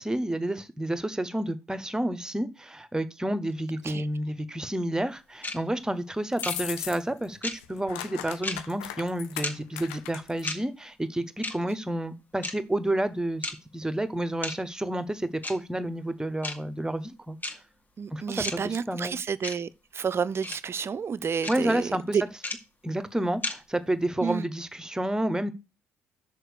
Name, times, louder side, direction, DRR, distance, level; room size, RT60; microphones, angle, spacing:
voice 1, 0.0-17.6 18.1-19.2 21.5-22.3 22.8-25.5, right 1 dB, 10° right, 1.4 m, -30 dB
sound 1, 5.4-5.5 6.4-6.5 7.4-7.5 8.4-8.5 9.4-9.5 10.4-10.6 11.4-11.5 12.4-12.5 13.4-13.5 14.4-14.5 15.4-15.5 16.4-16.5 17.4-17.5 18.4-18.5 19.4-19.5 20.4-20.5 21.4-21.5 22.4-22.5 23.4-23.5, left 2 dB, 25° left, 2.0 m, -32 dB
sound 2, 6.3-7.3 7.5-10.5, left 12 dB, 75° left, 0.8 m, -38 dB
voice 2, 18.0-19.7 19.9-21.9 22.1-22.2 24.2-24.5, right 6 dB, 40° right, 0.7 m, -30 dB
6.5 x 5.2 x 6.6 m
hypercardioid pair, 50°, 7 cm